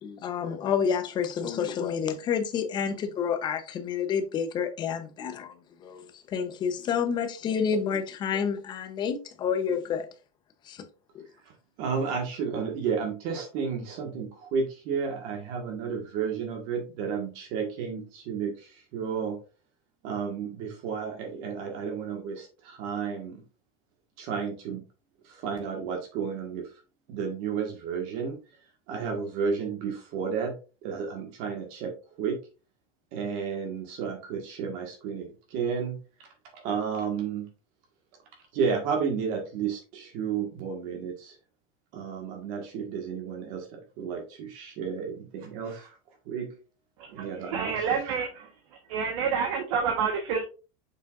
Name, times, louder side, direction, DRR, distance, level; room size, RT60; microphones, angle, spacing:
voice 1, 0.0-5.5 5.8-10.1 10.7-10.8 11.1-11.3, left 7 dB, 25° left, 0.9 m, -29 dB
voice 2, 11.8-19.4 20.0-23.4 24.2-24.8 25.2-26.7 27.1-28.4 28.9-30.5 30.8-31.9 32.2-32.4 33.1-36.0 36.5-37.5 38.5-41.3 41.9-45.9 46.2-46.5 47.1-48.0, right 6 dB, 50° right, 1.7 m, -32 dB
voice 3, 47.0-48.5 48.9-50.4, right 6 dB, 65° right, 1.3 m, -28 dB
6.9 x 5.7 x 2.5 m
supercardioid pair, 170°, 18 cm